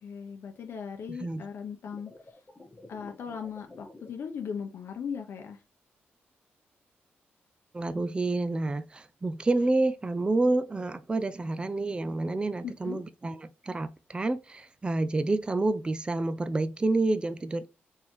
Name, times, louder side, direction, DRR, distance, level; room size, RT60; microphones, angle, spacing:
voice 1, 0.0-2.4 2.9-5.6 12.6-13.0, left 6 dB, 70° left, 0.7 m, -38 dB
voice 2, 1.1-1.4 7.7-17.7, right 2 dB, 25° right, 0.5 m, -29 dB
sound 1, 1.8-4.1, left 2 dB, 25° left, 1.2 m, -50 dB
4.3 x 3.6 x 3.0 m
cardioid pair, 70°, 4 cm